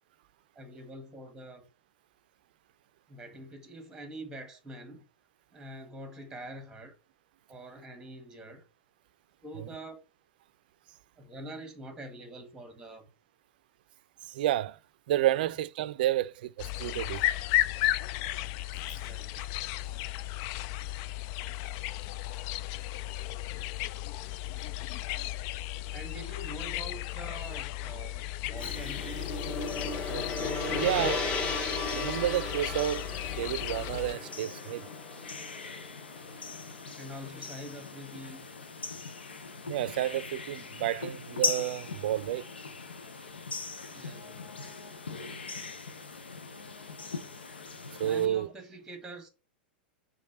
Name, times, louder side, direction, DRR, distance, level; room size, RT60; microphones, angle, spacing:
voice 1, 0.5-1.7 3.1-5.0 5.5-6.9 7.5-8.6 9.4-10.0 11.2-13.1 18.9-19.4 25.9-29.3 37.0-38.4 43.9-44.6 48.0-49.3, right 1 dB, 10° right, 1.6 m, -45 dB
voice 2, 14.2-14.8 15.1-17.2 19.4-19.5 30.7-31.4 31.9-34.9 39.6-42.4 48.0-48.5, right 13 dB, 60° right, 0.4 m, -30 dB
sound 1, 16.6-34.1, left 15 dB, 50° left, 0.3 m, -34 dB
Gong, 28.5-36.8, left 2 dB, 30° left, 2.4 m, -36 dB
sound 2, 28.6-48.3, left 4 dB, 85° left, 0.9 m, -41 dB
5.2 x 3.7 x 5.6 m
figure-of-eight pair, 95°, 5 cm